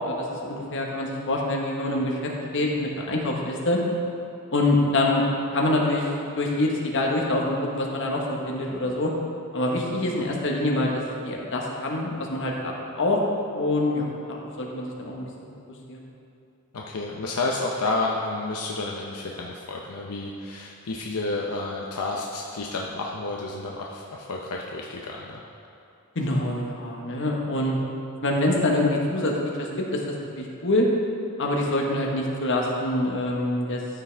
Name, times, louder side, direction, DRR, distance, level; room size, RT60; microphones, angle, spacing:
voice 1, 0.0-3.8 4.5-5.2 5.5-6.1 6.4-9.1 9.5-13.2 13.5-15.3 15.9-16.0 26.1-27.8 28.2-29.3 29.6-30.0 30.4-30.9 31.4-33.8, left 1 dB, 60° left, -1 dB, 1.3 m, -25 dB
voice 2, 16.7-25.4, left 2 dB, 85° left, -1 dB, 0.7 m, -30 dB
13.5 x 5.9 x 3.4 m, 2.7 s
head